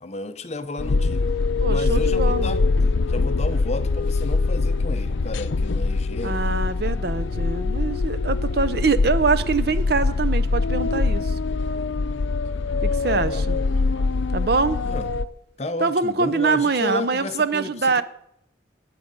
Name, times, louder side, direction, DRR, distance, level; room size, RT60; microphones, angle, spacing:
voice 1, 0.0-1.3 1.7-2.6 3.1-6.4 13.1-13.7 14.8-15.1 15.6-18.0, left 2 dB, 35° left, 11 dB, 0.6 m, -32 dB
sound 1, 0.8-15.2, left 3 dB, 85° left, 0.5 m, -23 dB
voice 2, 1.6-2.6 6.2-11.3 12.8-13.6 14.3-14.8 15.8-18.0, right 4 dB, 55° right, 13 dB, 0.6 m, -24 dB
18.5 x 7.5 x 5.3 m, 0.76 s
head